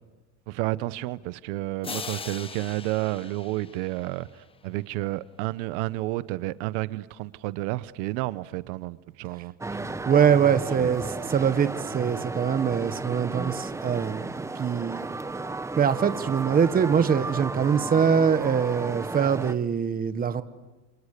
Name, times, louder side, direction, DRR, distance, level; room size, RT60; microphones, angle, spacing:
voice 1, 0.5-9.5 10.5-10.9, right 18 dB, 80° right, 1.0 m, -31 dB
sound 1, 1.8-4.7, left 5 dB, 15° left, 1.1 m, -40 dB
sound 2, 9.6-19.6, right 3 dB, 10° right, 0.9 m, -34 dB
voice 2, 10.1-14.3 14.6-15.0 15.8-20.4, right 7 dB, 25° right, 1.4 m, -23 dB
28.5 x 28.0 x 6.8 m
cardioid pair, 140°, 36 cm